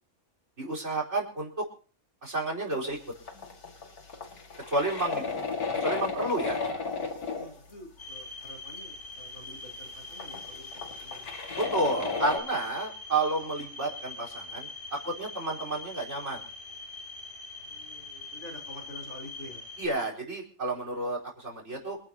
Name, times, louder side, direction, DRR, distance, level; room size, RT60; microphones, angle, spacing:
voice 1, 0.6-1.6 2.2-3.0 4.7-5.2 5.8-6.6 11.6-16.4 19.8-22.0, right 2 dB, 50° right, 2 dB, 5.0 m, -31 dB
sound 1, 3.2-7.5 8.5-8.6 8.8-8.9 9.7-9.8 10.2-12.4, left 4 dB, 90° left, 2.7 m, -33 dB
voice 2, 7.4-11.3 17.6-19.7, left 1 dB, 65° left, 0 dB, 4.4 m, -48 dB
sound 2, 8.0-19.9, left 3 dB, 35° left, 3.6 m, -43 dB
27.5 x 11.0 x 2.9 m, 0.42 s
omnidirectional pair, 1.5 m